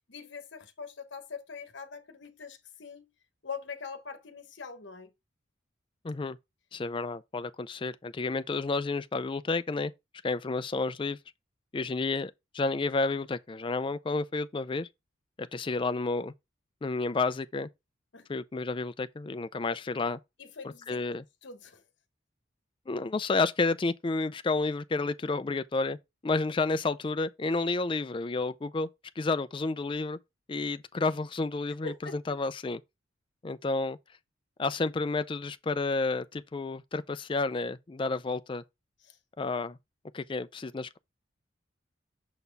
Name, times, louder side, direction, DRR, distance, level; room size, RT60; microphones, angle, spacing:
voice 1, 0.1-3.1 3.4-5.1 18.1-18.3 20.4-21.8 31.8-32.2 39.0-39.2, left 5 dB, 65° left, 1.1 m, -43 dB
voice 2, 6.0-6.4 6.7-9.9 10.2-11.2 11.7-14.9 15.4-16.3 16.8-17.7 18.3-20.2 20.9-21.2 22.9-26.0 26.2-28.9 29.2-30.2 30.5-32.8 33.4-34.0 34.6-38.6 39.4-39.8 40.1-41.0, left 3 dB, 25° left, 0.4 m, -30 dB
6.8 x 4.2 x 3.4 m
head